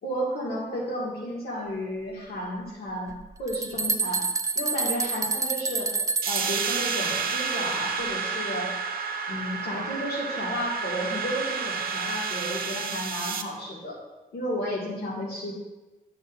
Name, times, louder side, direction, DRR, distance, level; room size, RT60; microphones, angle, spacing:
voice 1, 0.0-4.2 4.6-5.9 6.3-8.7 9.3-14.0 14.3-15.5, equal, 85° left, -4 dB, 2.1 m, -32 dB
sound 1, 3.1-3.2 3.5-6.6, right 4 dB, 20° right, 0.3 m, -28 dB
sound 2, 6.2-13.4, right 5 dB, 70° right, 0.6 m, -30 dB
11.5 x 7.1 x 2.6 m, 1.1 s
wide cardioid pair, 170°, 16 cm